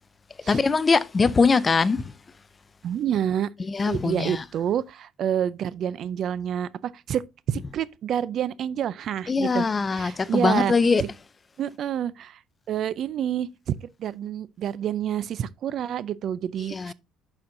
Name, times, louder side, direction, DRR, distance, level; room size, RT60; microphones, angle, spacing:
voice 1, 0.5-2.0 3.7-4.4 9.3-11.0 16.7-16.9, left 4 dB, 20° left, 0.4 m, -22 dB
voice 2, 2.8-3.5 3.9-10.7 11.0-11.1 11.6-12.4 12.7-16.9, right 9 dB, 50° right, 0.4 m, -28 dB
11.5 x 4.3 x 2.5 m
cardioid pair, 150°, 0 cm